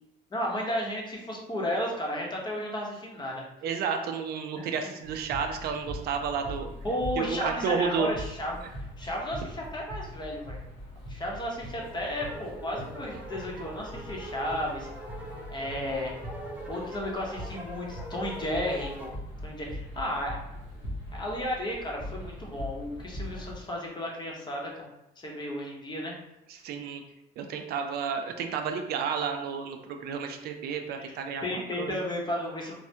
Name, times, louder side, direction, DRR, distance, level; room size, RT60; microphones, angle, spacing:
voice 1, 0.3-3.4 4.6-4.9 6.8-8.6 9.0-10.6 11.1-14.9 15.5-16.1 16.7-19.1 19.4-20.4 21.1-24.9 25.2-26.1 31.0-31.1 31.4-32.8, left 1 dB, 25° left, -2 dB, 0.8 m, -33 dB
voice 2, 3.6-6.7 7.2-8.1 26.5-27.0 27.4-32.0, right 6 dB, 65° right, 5 dB, 0.4 m, -31 dB
sound 1, 5.0-23.6, equal, 80° left, 1.0 m, -41 dB
sound 2, 11.8-19.2, equal, 10° right, 0.5 m, -43 dB
3.3 x 2.1 x 2.7 m, 0.89 s
cardioid pair, 110°, 17 cm